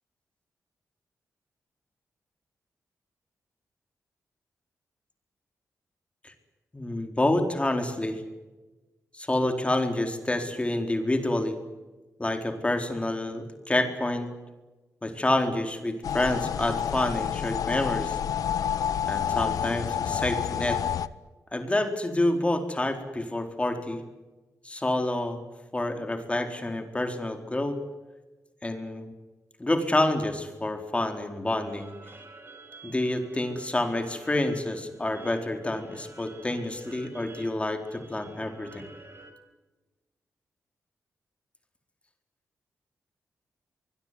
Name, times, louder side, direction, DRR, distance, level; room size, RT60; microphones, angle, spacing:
voice 1, 6.7-8.2 9.1-11.6 12.2-14.3 15.0-18.2 19.1-20.8 21.5-24.0 24.6-25.4 25.7-27.8 28.6-29.1 29.6-31.9 32.8-38.8, left 1 dB, 20° left, 6 dB, 4.2 m, -28 dB
sound 1, 16.0-21.1, left 9 dB, 85° left, 0.8 m, -29 dB
sound 2, 31.7-39.3, right 3 dB, 40° right, 5.6 m, -50 dB
24.0 x 22.0 x 9.7 m, 1.2 s
cardioid pair, 75°, 6 cm